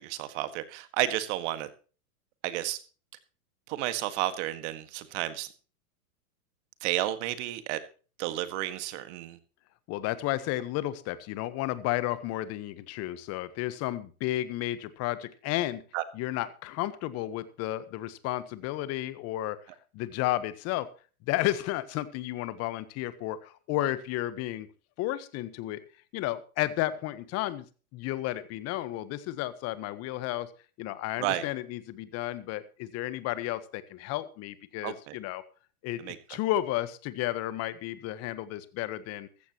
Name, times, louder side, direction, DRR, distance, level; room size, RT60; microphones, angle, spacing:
voice 1, 0.0-1.7 2.4-2.8 3.7-5.5 6.8-7.8 8.2-9.4 15.9-16.0 31.2-31.5 34.8-35.2 36.0-36.2, right 14 dB, 50° right, 1.8 m, -31 dB
voice 2, 9.9-15.8 16.1-19.6 19.9-20.9 21.3-24.7 25.0-25.8 26.1-27.7 27.9-30.5 30.8-35.4 35.8-39.3, left 15 dB, 35° left, 1.2 m, -32 dB
14.5 x 14.5 x 3.0 m
hypercardioid pair, 135°, 45 cm